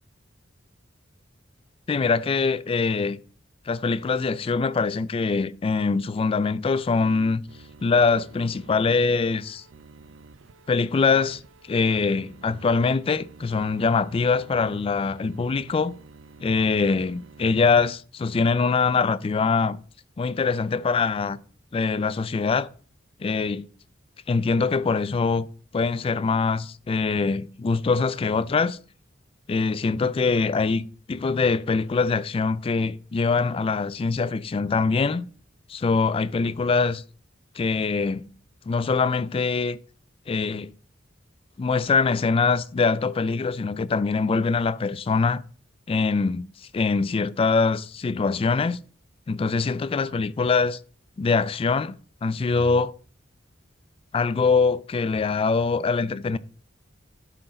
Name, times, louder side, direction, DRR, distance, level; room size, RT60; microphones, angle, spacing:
voice 1, 1.9-3.2 3.7-7.4 7.8-9.6 10.7-15.9 16.4-19.8 20.2-21.4 21.7-22.7 23.2-23.6 24.3-25.5 25.7-28.8 29.5-35.3 35.7-37.0 37.6-38.3 38.7-39.8 40.3-40.7 41.6-45.4 45.9-46.5 46.7-48.8 49.3-50.8 51.2-52.0 52.2-52.9 54.1-56.4, left 4 dB, 30° left, 0.3 m, -23 dB
sound 1, 7.5-17.9, right 4 dB, 85° right, 0.5 m, -50 dB
11.0 x 3.8 x 3.9 m
head